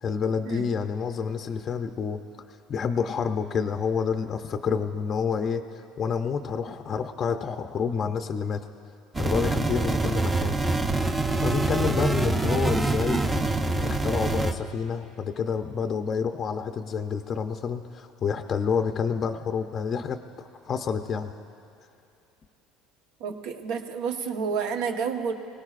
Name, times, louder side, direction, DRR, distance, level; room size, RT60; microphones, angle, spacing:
voice 1, 0.0-2.2 2.7-5.6 6.0-8.7 9.2-10.6 11.4-13.2 13.7-21.3, left 6 dB, 30° left, 6 dB, 0.5 m, -28 dB
sound 1, 9.1-14.5, right 2 dB, 10° right, 0.6 m, -25 dB
voice 2, 23.2-25.3, right 6 dB, 70° right, 5 dB, 1.1 m, -30 dB
25.0 x 17.5 x 2.5 m, 2.7 s
cardioid pair, 150°, 0 cm